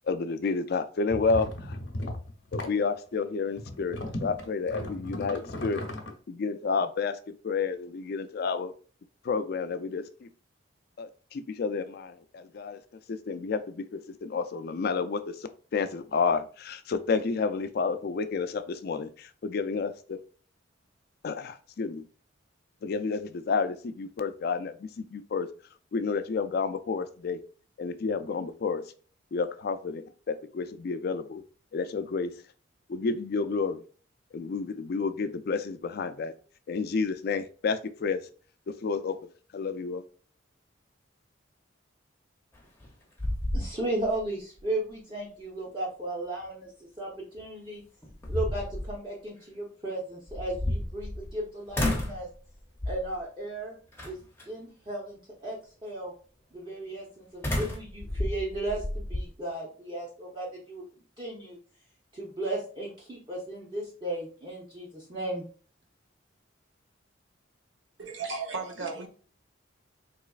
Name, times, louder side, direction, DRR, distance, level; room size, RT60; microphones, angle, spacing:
voice 1, 0.1-1.8 2.5-5.8 6.3-7.2 7.4-8.7 9.2-10.3 11.0-12.8 13.1-15.4 15.7-20.2 21.2-22.0 22.8-25.5 25.9-27.4 27.8-28.8 29.3-31.4 31.7-32.3 32.9-33.8 34.3-36.3 36.7-38.2 38.7-39.2 39.5-40.0, left 4 dB, 50° left, 0.3 m, -30 dB
sound 1, 1.1-2.8 3.6-6.1, left 1 dB, 70° left, 0.7 m, -36 dB
sound 2, 42.6-42.9 43.2-44.2 44.6-44.7 47.4-47.5 48.0-48.9 50.3-51.4 51.7-52.3 52.8-53.2 54.0-54.4 57.4-59.3, left 1 dB, 10° left, 0.6 m, -31 dB
voice 2, 43.5-46.7 47.0-47.8 48.3-52.3 52.9-53.8 54.0-54.2 54.5-56.1 56.5-60.8 61.2-61.6 62.1-65.4, right 1 dB, 25° right, 0.7 m, -35 dB
voice 3, 68.0-69.1, right 4 dB, 70° right, 0.7 m, -34 dB
4.0 x 3.0 x 2.4 m
head